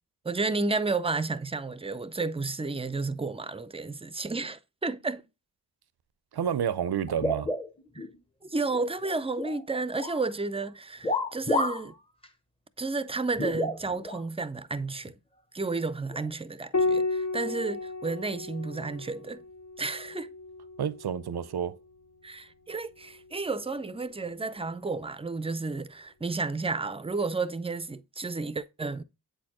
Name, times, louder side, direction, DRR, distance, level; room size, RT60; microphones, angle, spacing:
voice 1, 0.2-5.2 8.0-8.1 8.4-11.9 12.8-15.1 15.5-19.4 19.8-20.3 22.2-29.0, right 3 dB, 15° right, 0.4 m, -32 dB
voice 2, 6.3-7.5 20.8-21.8, right 8 dB, 85° right, 0.5 m, -29 dB
sound 1, 7.1-8.1 8.5-9.6 9.9-10.3 11.0-11.9 12.2-12.3 13.4-14.2 15.1-15.2 16.1-16.3, left 1 dB, 15° left, 0.7 m, -30 dB
Piano, 16.7-21.6 23.2-24.0, left 3 dB, 55° left, 0.6 m, -33 dB
8.1 x 4.3 x 2.9 m
wide cardioid pair, 65°, 38 cm